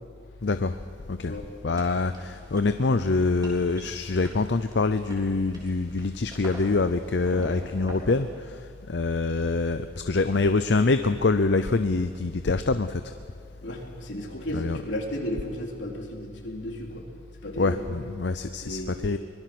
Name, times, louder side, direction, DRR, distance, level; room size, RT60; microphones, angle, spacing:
voice 1, 0.4-0.8 1.1-1.4 1.6-13.0 14.5-14.8 17.6-19.2, left 3 dB, 70° left, 10 dB, 0.7 m, -25 dB
sound 1, 1.8-8.2, equal, 20° right, 3.8 m, -44 dB
voice 2, 13.6-17.0 17.4-17.9 18.6-18.9, equal, 85° left, 0 dB, 3.6 m, -34 dB
23.5 x 22.0 x 6.1 m, 2.2 s
head